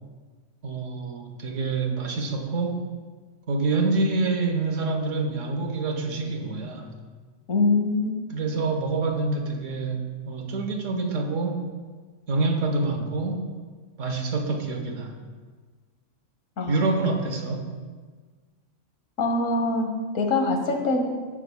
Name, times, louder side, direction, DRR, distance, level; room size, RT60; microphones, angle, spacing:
voice 1, 0.6-2.8 3.5-6.9 8.3-11.7 12.3-13.4 14.0-15.1 16.7-17.6, right 3 dB, 80° right, 4 dB, 1.3 m, -26 dB
voice 2, 7.5-8.1 16.6-16.8 19.2-21.1, left 3 dB, 85° left, 4 dB, 1.4 m, -24 dB
16.0 x 6.3 x 2.2 m, 1.5 s
omnidirectional pair, 1.3 m